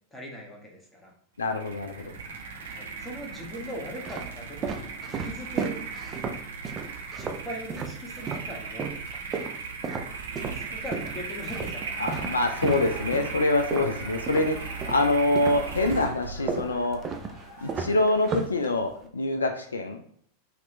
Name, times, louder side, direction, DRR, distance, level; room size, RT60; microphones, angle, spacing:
voice 1, 0.1-1.1 2.6-4.9 5.2-5.8 7.1-8.9 10.5-11.9 13.7-14.0, equal, 10° left, -2 dB, 1.1 m, -40 dB
voice 2, 1.4-2.1 12.0-17.0 17.6-20.0, left 2 dB, 75° left, 5 dB, 0.3 m, -25 dB
sound 1, 1.4-17.7, right 5 dB, 65° right, 0.8 m, -38 dB
sound 2, 2.0-2.7 3.4-8.5 8.8-15.1 15.4-19.1, right 5 dB, 25° right, 0.4 m, -34 dB
Laughter, 11.7-18.5, left 3 dB, 45° left, 1.1 m, -46 dB
4.3 x 2.4 x 3.1 m, 0.64 s
figure-of-eight pair, 90°, 0 cm